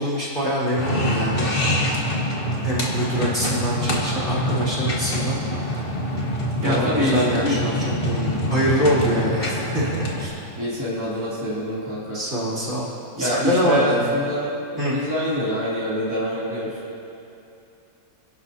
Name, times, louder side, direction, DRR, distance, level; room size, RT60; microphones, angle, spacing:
voice 1, 0.0-1.5 2.6-5.9 6.5-7.8 8.0-10.3 12.1-12.9 13.2-14.0 14.8-15.0, equal, 35° right, -9 dB, 3.4 m, -24 dB
sound 1, 0.8-10.3, equal, 30° left, 1.7 m, -25 dB
voice 2, 6.6-7.6 10.5-12.2 13.1-16.8, equal, 10° right, -9 dB, 2.8 m, -25 dB
27.5 x 11.5 x 2.8 m, 2.8 s
omnidirectional pair, 1.9 m